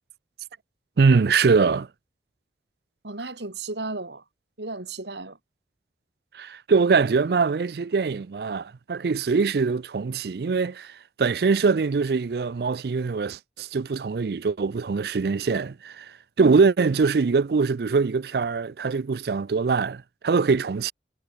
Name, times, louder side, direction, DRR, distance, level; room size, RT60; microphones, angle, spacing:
voice 1, 1.0-1.9 6.4-10.9 11.2-16.0 16.4-20.9, right 4 dB, 60° right, 0.4 m, -23 dB
voice 2, 3.0-4.2 4.6-5.4 16.4-16.6, right 2 dB, 75° right, 2.5 m, -34 dB
head